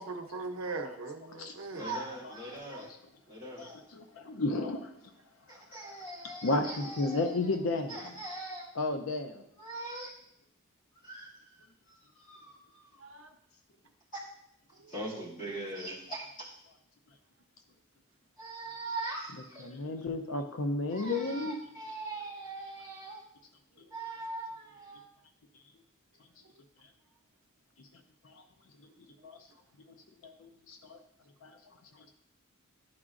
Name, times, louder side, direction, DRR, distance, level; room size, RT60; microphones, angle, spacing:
voice 1, 0.0-1.9 13.0-13.3 14.8-14.9 29.2-29.3, right 3 dB, 70° right, 5 dB, 0.7 m, -40 dB
voice 2, 1.7-2.9 3.3-3.8 5.5-7.3 7.9-8.8 9.6-10.1 11.0-12.9 14.1-14.2 14.9-16.5 18.4-19.7 20.9-23.2 23.9-25.0, right 2 dB, 40° left, -7 dB, 2.5 m, -41 dB
voice 3, 3.6-4.9 5.7-5.8 6.4-8.1 8.8-9.4 19.6-21.6 23.8-23.9 27.8-27.9 28.2-28.4 29.2-29.4 30.2-31.0 31.4-31.6 31.9-32.1, left 2 dB, 75° left, 6 dB, 0.5 m, -33 dB
11.0 x 4.8 x 2.5 m, 0.77 s
head